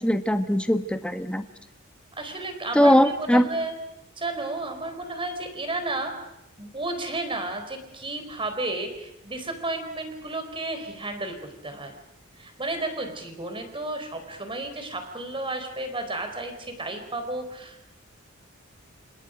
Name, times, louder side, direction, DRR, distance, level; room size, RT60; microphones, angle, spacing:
voice 1, 0.0-1.4 2.7-3.5, equal, 5° left, 7 dB, 1.4 m, -20 dB
voice 2, 2.1-2.9 3.2-3.7 4.2-6.1 6.6-11.4 11.6-11.9 12.4-17.9, right 2 dB, 25° right, 6 dB, 4.2 m, -32 dB
28.5 x 27.5 x 5.1 m, 0.82 s
head